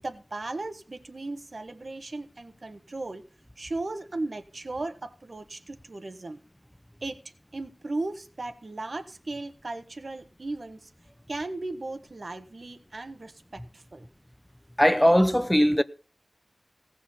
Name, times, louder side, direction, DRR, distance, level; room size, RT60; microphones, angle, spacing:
voice 1, 0.0-3.2 3.6-6.4 7.0-7.2 7.5-10.9 11.3-14.1, right 2 dB, 60° right, 1.3 m, -36 dB
voice 2, 14.8-15.8, equal, 5° left, 0.8 m, -19 dB
17.0 x 6.1 x 5.7 m
wide cardioid pair, 75°, 0 cm